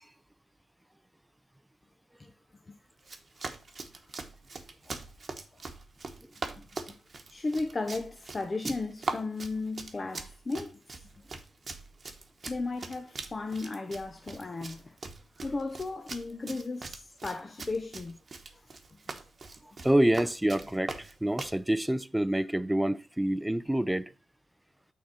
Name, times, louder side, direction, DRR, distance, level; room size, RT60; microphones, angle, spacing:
Run, 3.0-21.6, right 3 dB, 50° right, 1.0 m, -42 dB
voice 1, 7.3-11.0 12.5-15.0 15.4-18.1 18.5-18.7, left 3 dB, 35° left, 0.7 m, -35 dB
voice 2, 19.8-24.1, right 1 dB, 10° right, 0.4 m, -27 dB
6.2 x 3.7 x 5.6 m
cardioid pair, 65°, 0 cm